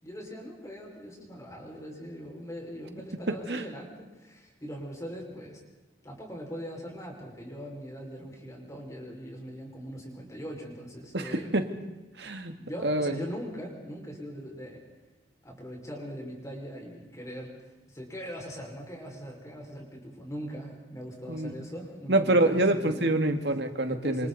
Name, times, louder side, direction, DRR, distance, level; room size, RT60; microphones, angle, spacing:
voice 1, 0.0-5.6 6.0-11.6 12.6-14.8 15.4-17.5 17.9-23.2 23.9-24.3, equal, 20° left, -1 dB, 5.7 m, -41 dB
voice 2, 3.3-3.6 11.1-11.7 12.2-12.5 12.8-13.2 21.3-21.5 22.1-24.3, right 2 dB, 70° right, 7 dB, 1.9 m, -26 dB
28.0 x 27.0 x 4.2 m, 1.1 s
head